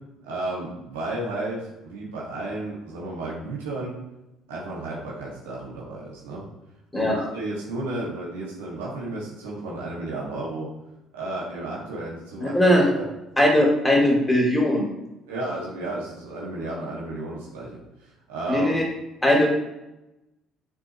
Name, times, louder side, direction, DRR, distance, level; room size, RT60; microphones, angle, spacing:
voice 1, 0.2-4.0 4.5-6.4 7.0-10.7 11.1-13.1 15.3-18.7, right 2 dB, 85° right, -4 dB, 1.8 m, -33 dB
voice 2, 12.4-12.8 13.4-14.9 18.5-18.8 19.2-19.5, left 1 dB, 10° left, -2 dB, 2.5 m, -19 dB
7.0 x 5.8 x 3.0 m, 0.93 s
hypercardioid pair, 60°, 0 cm